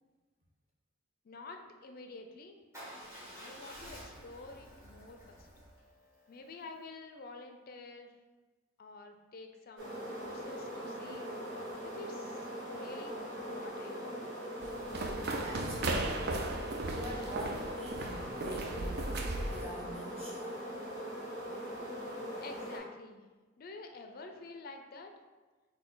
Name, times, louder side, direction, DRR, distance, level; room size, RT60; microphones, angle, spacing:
voice 1, 1.2-2.6 3.3-5.5 6.3-8.1 8.8-11.3 11.8-12.5 12.7-13.2 13.5-14.2 22.1-23.2 23.6-25.2, left 3 dB, 50° left, 5 dB, 0.4 m, -49 dB
Motorcycle / Engine starting / Idling, 2.7-6.8, equal, 15° right, 1.3 m, -51 dB
sound 1, 9.8-22.8, equal, 75° right, 1.2 m, -41 dB
sound 2, 14.6-19.7, right 2 dB, 55° right, 0.4 m, -36 dB
voice 2, 15.4-20.6, equal, 30° right, -6 dB, 1.1 m, -46 dB
4.0 x 2.7 x 3.8 m, 1.3 s
head